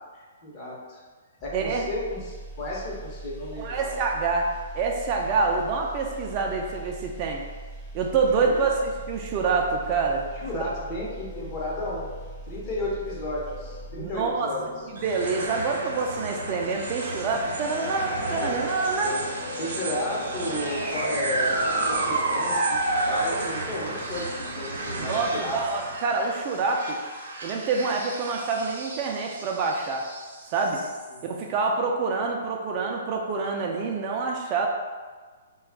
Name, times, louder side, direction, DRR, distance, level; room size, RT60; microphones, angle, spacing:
voice 1, 0.1-1.0 1.4-4.0 8.4-8.7 10.3-12.1 12.5-14.7 18.4-18.6 19.0-19.2 19.6-21.5 21.9-25.6 31.1-31.5, left 1 dB, 40° left, -4 dB, 0.9 m, -33 dB
sound 1, 1.4-14.5 14.9-15.1, right 2 dB, ahead, 0.7 m, -41 dB
voice 2, 1.5-1.8 3.6-7.4 7.9-10.3 10.5-10.6 14.0-14.5 14.9-19.1 25.0-27.0 27.4-30.0 30.5-30.8 31.2-34.7, right 4 dB, 35° right, 1 dB, 0.3 m, -26 dB
sound 2, 9.0-26.0, left 7 dB, 65° left, 0.3 m, -46 dB
sound 3, 15.0-31.4, right 2 dB, 70° right, 0.8 m, -31 dB
2.4 x 2.3 x 3.5 m, 1.4 s
hypercardioid pair, 135°, 0 cm